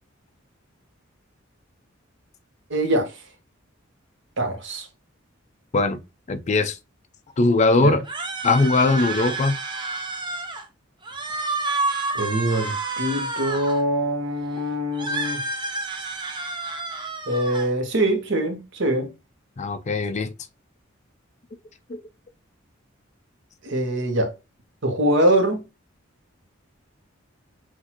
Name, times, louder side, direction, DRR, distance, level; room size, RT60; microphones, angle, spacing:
voice 1, 2.7-3.1 4.4-4.9 7.8-7.9 12.1-15.4 17.3-19.1 23.6-24.3 24.8-25.6, right 1 dB, 65° right, 1.1 m, -23 dB
voice 2, 6.3-6.8 7.4-8.1 8.4-9.6 19.6-20.3 21.9-22.0, left 3 dB, 35° left, 0.4 m, -20 dB
sound 1, 8.0-10.7 11.0-13.8 14.9-17.7, right 3 dB, 25° right, 0.7 m, -29 dB
6.0 x 2.6 x 2.9 m
head